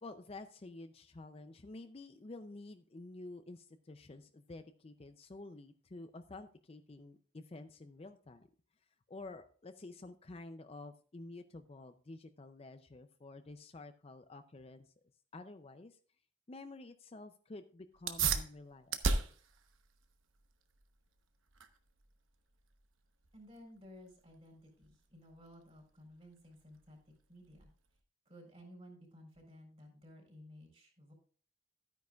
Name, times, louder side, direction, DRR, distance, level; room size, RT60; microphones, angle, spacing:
voice 1, 0.0-8.5 9.1-14.8 15.3-16.0 16.5-19.2, left 2 dB, 30° left, 9 dB, 0.5 m, -50 dB
sound 1, 17.9-28.0, right 4 dB, 85° right, 1.0 m, -40 dB
voice 2, 23.3-27.7 28.3-31.1, equal, 30° right, 2 dB, 4.0 m, -56 dB
13.0 x 9.4 x 2.4 m, 0.42 s
head